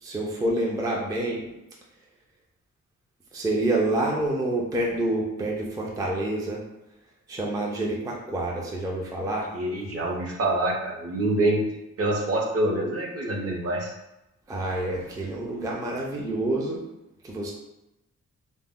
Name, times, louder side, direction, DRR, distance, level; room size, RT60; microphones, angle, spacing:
voice 1, 0.0-1.4 3.3-6.6 7.3-9.5 14.5-16.8 17.2-17.5, right 1 dB, 10° right, -2 dB, 0.3 m, -27 dB
voice 2, 9.5-11.6 12.0-13.9, right 1 dB, 50° right, 0 dB, 0.6 m, -26 dB
2.1 x 2.0 x 3.5 m, 0.94 s
wide cardioid pair, 120°, 31 cm